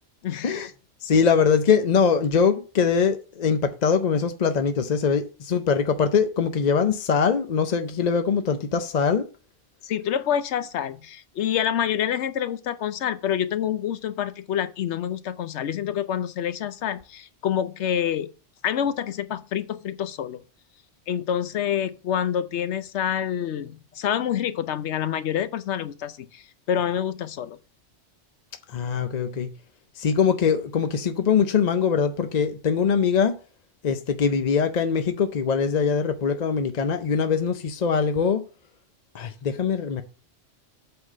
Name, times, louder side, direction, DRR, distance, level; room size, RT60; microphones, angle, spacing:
voice 1, 0.2-0.6 9.8-18.3 18.6-20.4 21.1-27.6, left 9 dB, 70° left, 1.0 m, -27 dB
voice 2, 1.0-9.3 28.7-29.5 30.0-33.3 33.8-38.4 39.1-40.0, left 6 dB, 45° left, 0.6 m, -22 dB
7.9 x 3.8 x 6.5 m
omnidirectional pair, 1.2 m